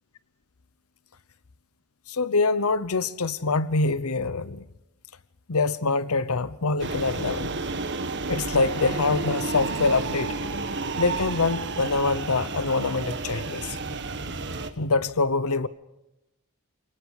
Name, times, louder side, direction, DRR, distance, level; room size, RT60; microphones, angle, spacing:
voice 1, 2.1-4.6 5.5-7.5 8.3-10.3 11.0-13.8 14.8-15.7, left 3 dB, 80° left, 0.9 m, -25 dB
sound 1, 6.8-14.7, right 3 dB, 55° right, 1.7 m, -31 dB
29.0 x 19.0 x 4.9 m
head